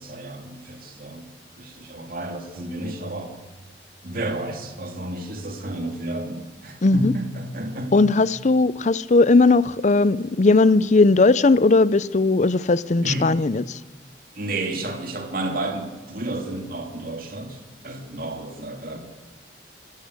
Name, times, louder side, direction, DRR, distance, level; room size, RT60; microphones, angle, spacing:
voice 1, 0.0-3.3 4.0-8.1 13.0-13.4 14.4-19.0, right 1 dB, 55° right, 2.8 m, -31 dB
voice 2, 6.8-7.1 7.9-13.6, left 3 dB, 40° left, 0.6 m, -18 dB
26.5 x 13.0 x 8.2 m
head